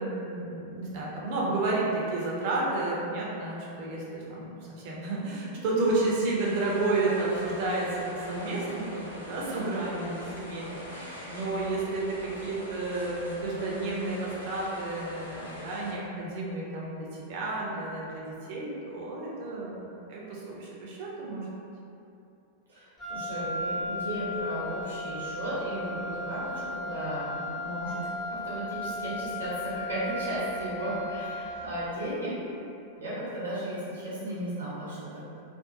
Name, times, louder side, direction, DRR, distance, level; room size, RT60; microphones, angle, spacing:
voice 1, 0.0-21.5, right 2 dB, 50° right, -4 dB, 0.5 m, -31 dB
sound 1, 6.4-15.9, left 1 dB, 80° left, 0.4 m, -43 dB
voice 2, 22.7-32.3 33.0-35.0, right 1 dB, 70° right, -9 dB, 0.8 m, -35 dB
Wind instrument woodwind instrument, 23.0-31.7, left 1 dB, 15° left, 0.5 m, -36 dB
2.5 x 2.2 x 2.6 m, 2.7 s
figure-of-eight pair, 90°, 0 cm